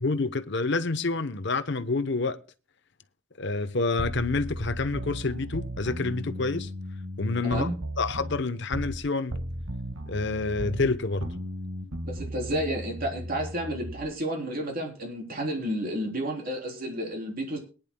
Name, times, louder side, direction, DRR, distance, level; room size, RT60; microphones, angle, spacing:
voice 1, 0.0-2.4 3.4-6.7 7.2-7.7 8.0-9.3 10.1-11.3, left 3 dB, 55° left, 0.8 m, -28 dB
sound 1, 4.0-9.0 9.3-14.1, equal, 85° right, 1.8 m, -36 dB
voice 2, 7.4-7.7 12.0-17.6, right 1 dB, 40° right, 3.6 m, -31 dB
22.0 x 10.5 x 2.2 m
head